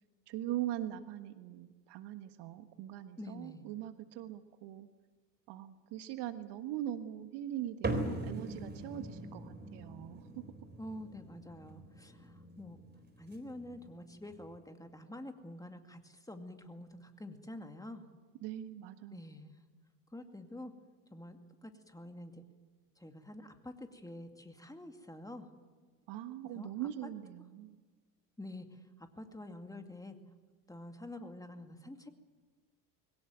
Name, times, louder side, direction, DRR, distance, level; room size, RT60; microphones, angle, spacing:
voice 1, 0.3-4.9 5.5-10.4 18.4-19.3 26.1-27.8, right 12 dB, 55° right, 10 dB, 1.4 m, -41 dB
voice 2, 3.2-3.7 10.8-12.8 13.2-18.1 19.1-19.5 20.1-20.7 21.1-22.4 23.0-25.5 26.5-26.9 28.4-30.2 30.7-32.1, left 1 dB, 5° left, 6 dB, 2.3 m, -47 dB
sound 1, 7.8-14.6, right 2 dB, 20° right, 3.9 m, -42 dB
22.0 x 18.0 x 9.2 m, 1.4 s
hypercardioid pair, 70°, 49 cm